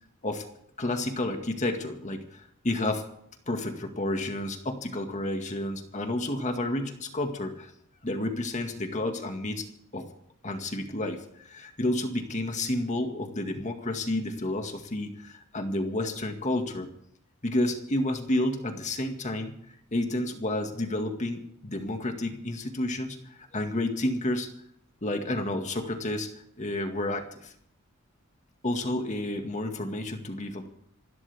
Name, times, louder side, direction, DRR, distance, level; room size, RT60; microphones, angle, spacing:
voice 1, 0.8-3.1 3.5-7.7 8.0-9.7 9.9-10.1 10.4-16.9 17.4-19.6 19.9-24.5 25.0-27.5 28.6-30.7, left 1 dB, 35° left, 5 dB, 1.9 m, -30 dB
28.0 x 12.5 x 3.6 m, 0.71 s
head